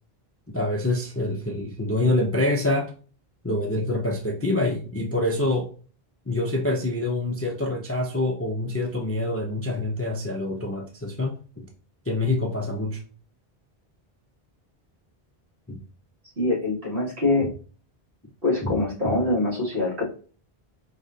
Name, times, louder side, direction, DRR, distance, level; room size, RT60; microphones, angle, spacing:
voice 1, 0.5-2.9 3.4-5.7 6.3-11.7 12.1-13.0 15.7-15.8 18.6-18.8 19.0-19.1, left 2 dB, 20° left, 1 dB, 0.4 m, -26 dB
voice 2, 16.4-17.5 18.4-20.1, left 2 dB, 65° right, -5 dB, 2.4 m, -24 dB
5.0 x 3.2 x 2.7 m, 0.39 s
omnidirectional pair, 1.0 m